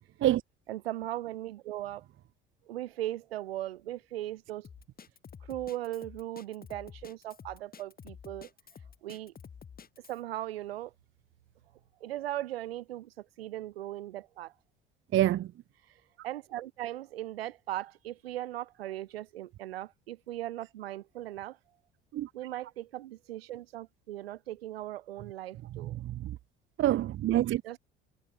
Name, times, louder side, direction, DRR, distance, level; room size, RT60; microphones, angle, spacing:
voice 1, 0.7-2.1 2.7-4.7 5.5-8.5 9.0-9.3 10.1-10.9 12.0-14.5 16.2-21.6 22.3-26.0 27.6-27.8, right 14 dB, 75° right, 2.7 m, -38 dB
Drum kit, 4.6-10.2, left 6 dB, 30° left, 2.6 m, -50 dB
voice 2, 15.1-15.5 22.1-22.3 25.8-26.4 26.8-27.8, right 13 dB, 40° right, 0.8 m, -27 dB
figure-of-eight pair, 60°, 30 cm